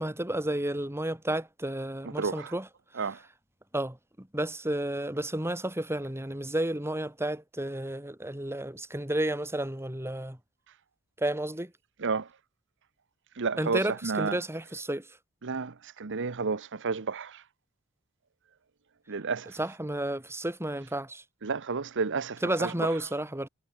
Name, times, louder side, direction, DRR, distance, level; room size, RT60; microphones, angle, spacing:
voice 1, 0.0-2.7 3.7-10.4 11.2-11.7 13.6-15.1 19.5-21.2 22.4-23.5, right 1 dB, 10° right, 2.9 m, -31 dB
voice 2, 2.2-2.5 2.9-3.2 12.0-12.3 13.3-14.4 15.4-17.4 19.1-19.6 21.4-22.9, right 4 dB, 55° right, 0.9 m, -31 dB
head